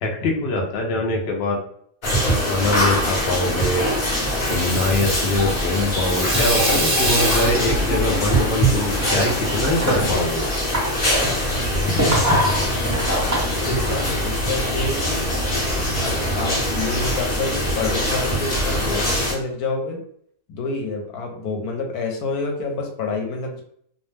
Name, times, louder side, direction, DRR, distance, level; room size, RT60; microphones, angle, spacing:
voice 1, 0.0-1.6 2.2-3.9 4.5-10.5, left 2 dB, 60° left, 0 dB, 0.7 m, -23 dB
sound 1, 2.0-19.3, equal, 35° left, 0.9 m, -23 dB
Water tap faucet / Sink (filling or washing), 4.2-14.4, equal, 15° right, 0.6 m, -26 dB
sound 2, 11.5-19.1, right 1 dB, 65° right, 0.6 m, -30 dB
voice 2, 13.3-15.3 16.0-20.0 20.5-23.6, left 3 dB, 80° left, 3 dB, 1.1 m, -28 dB
2.6 x 2.0 x 3.2 m, 0.65 s
omnidirectional pair, 1.6 m